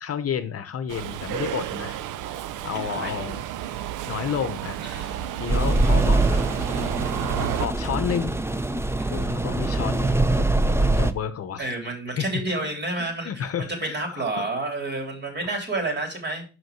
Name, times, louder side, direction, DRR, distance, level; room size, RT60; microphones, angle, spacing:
voice 1, 0.0-2.0 2.6-3.4 4.1-4.8 5.4-6.5 7.4-8.4 9.1-10.4 10.8-11.7 12.1-12.3 12.6-12.7 13.0-14.5 15.4-15.5, left 8 dB, 50° left, 11 dB, 0.8 m, -31 dB
Subway metro underground, 0.9-7.7, right 11 dB, 85° right, 0.6 m, -31 dB
voice 2, 2.7-3.1 4.8-5.6 9.0-9.3 9.6-9.8 11.6-16.4, right 2 dB, 35° right, 3 dB, 3.3 m, -30 dB
sound 1, 5.5-11.1, right 2 dB, 10° right, 0.6 m, -23 dB
6.0 x 5.3 x 6.0 m, 0.34 s
cardioid pair, 90°, 30 cm